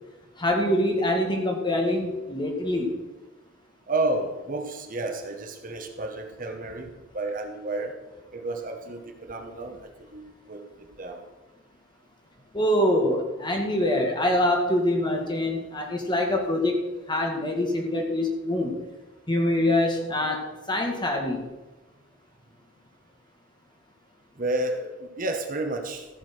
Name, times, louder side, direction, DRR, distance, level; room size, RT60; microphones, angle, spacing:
voice 1, 0.4-2.9 12.5-18.7 19.3-21.5, left 1 dB, 25° left, 1 dB, 2.0 m, -25 dB
voice 2, 3.9-7.9 8.3-11.2 24.4-26.1, right 2 dB, 45° right, 4 dB, 1.3 m, -31 dB
14.5 x 7.0 x 6.1 m, 1.1 s
head